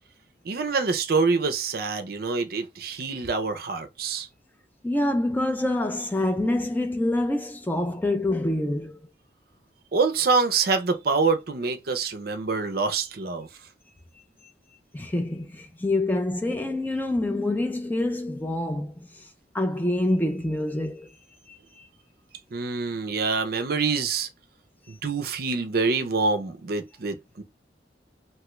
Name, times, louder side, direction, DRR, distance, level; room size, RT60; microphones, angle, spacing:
voice 1, 0.4-4.3 9.9-13.5 22.5-24.3 24.9-27.4, right 4 dB, 55° right, 0.5 m, -26 dB
voice 2, 4.8-9.1 14.9-18.9 19.5-21.1, left 1 dB, 10° left, 0.4 m, -26 dB
2.9 x 2.3 x 3.0 m
head